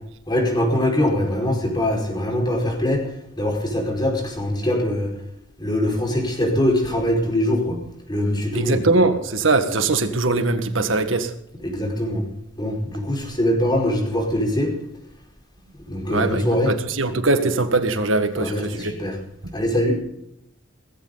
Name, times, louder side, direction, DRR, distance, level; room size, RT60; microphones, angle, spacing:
voice 1, 0.3-3.0 3.4-5.1 5.6-7.8 8.1-8.8 11.6-12.3 12.6-14.7 15.9-16.7 18.4-19.1 19.5-20.0, left 1 dB, 25° left, 1 dB, 5.2 m, -22 dB
voice 2, 8.5-11.3 16.1-19.0, right 3 dB, 85° right, 8 dB, 1.7 m, -21 dB
19.5 x 15.5 x 4.0 m, 0.77 s
head